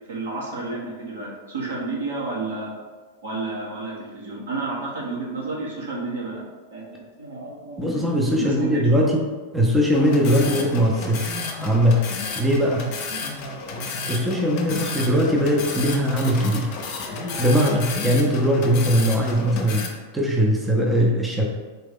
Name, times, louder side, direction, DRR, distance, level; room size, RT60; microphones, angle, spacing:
voice 1, 0.1-2.7 3.2-6.4 6.7-9.0 13.1-13.2, right 3 dB, 75° right, -4 dB, 1.3 m, -31 dB
voice 2, 7.8-11.3 11.6-12.1 12.4-12.9 14.1-16.8 17.4-19.9 20.1-21.4, equal, 5° right, -2 dB, 0.7 m, -20 dB
sound 1, 9.9-19.9, left 4 dB, 50° left, 0.7 m, -32 dB
4.0 x 2.8 x 3.7 m, 1.3 s
hypercardioid pair, 95°, 0 cm